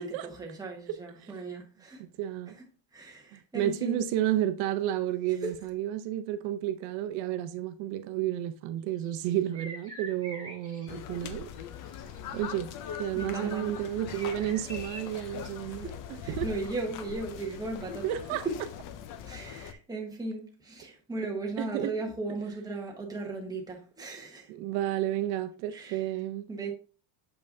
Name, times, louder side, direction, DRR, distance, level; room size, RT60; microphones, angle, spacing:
voice 1, 0.0-2.0 2.5-2.6 2.9-4.0 5.4-5.6 13.1-13.7 15.7-18.1 18.4-18.6 19.2-24.5 25.7-26.1 26.5-26.7, right 3 dB, 10° right, 1.2 m, -37 dB
voice 2, 2.2-2.5 3.3-11.5 12.3-12.7 13.0-15.9 16.3-16.5 18.0-18.5 21.6-21.9 24.5-26.5, right 12 dB, 70° right, 0.7 m, -31 dB
sound 1, 8.9-11.6 11.9-12.9 14.1-15.5, right 1 dB, 10° left, 2.1 m, -45 dB
sound 2, 10.9-19.7, left 8 dB, 45° left, 0.5 m, -41 dB
6.9 x 5.4 x 2.6 m
cardioid pair, 160°, 48 cm